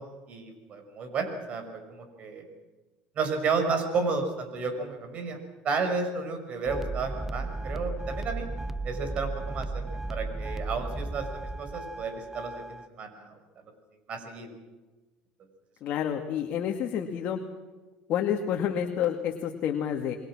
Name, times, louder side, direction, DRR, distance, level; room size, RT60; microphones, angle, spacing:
voice 1, 0.0-1.6 1.9-2.5 3.2-5.4 5.6-8.5 8.8-13.3 14.1-14.5, right 4 dB, 45° right, 6 dB, 6.2 m, -32 dB
sound 1, 6.7-12.9, right 2 dB, 10° right, 0.7 m, -35 dB
voice 2, 15.8-17.4 18.1-20.2, left 9 dB, 50° left, 3 dB, 2.3 m, -29 dB
28.5 x 22.5 x 6.3 m, 1.2 s
supercardioid pair, 120°, 3 cm